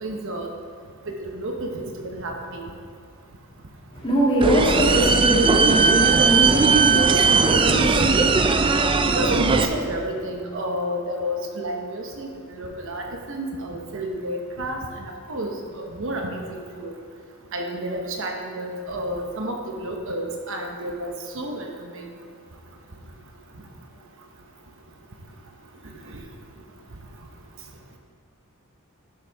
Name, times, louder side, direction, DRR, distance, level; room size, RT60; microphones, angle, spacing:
voice 1, 0.0-0.5 1.2-2.7 9.0-16.9 17.5-22.1 26.1-26.2, right 1 dB, 60° right, 2 dB, 1.0 m, -30 dB
voice 2, 3.9-8.0, right 1 dB, 25° left, -6 dB, 2.3 m, -22 dB
sound 1, 4.4-9.7, right 4 dB, 25° right, 0.4 m, -18 dB
11.5 x 6.7 x 3.5 m, 2.3 s
head